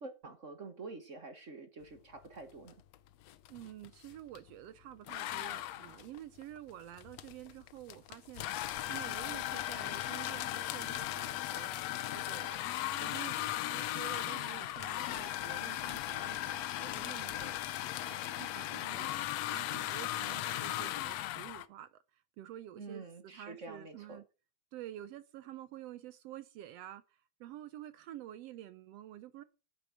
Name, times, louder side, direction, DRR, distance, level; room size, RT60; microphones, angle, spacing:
voice 1, 0.0-2.7 22.7-24.2, right 3 dB, 45° right, 0.9 m, -47 dB
sound 1, 2.7-2.9 3.2-4.5 5.1-21.7, left 14 dB, 70° left, 1.7 m, -37 dB
voice 2, 3.5-12.7 12.9-19.1 19.5-24.3 24.7-29.4, right 13 dB, 75° right, 1.6 m, -49 dB
11.0 x 8.7 x 6.3 m
omnidirectional pair, 3.3 m